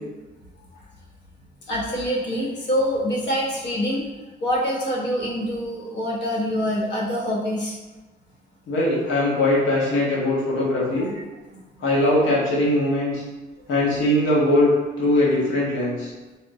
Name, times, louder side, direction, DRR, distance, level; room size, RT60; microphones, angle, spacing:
voice 1, 1.7-4.0 4.4-7.8 11.5-11.6, equal, 65° left, -3 dB, 0.9 m, -25 dB
voice 2, 8.7-11.1 11.8-13.2 13.7-14.7 15.0-16.1, left 1 dB, 85° left, -6 dB, 1.1 m, -21 dB
3.5 x 2.2 x 2.6 m, 1.2 s
cardioid pair, 90°, 20 cm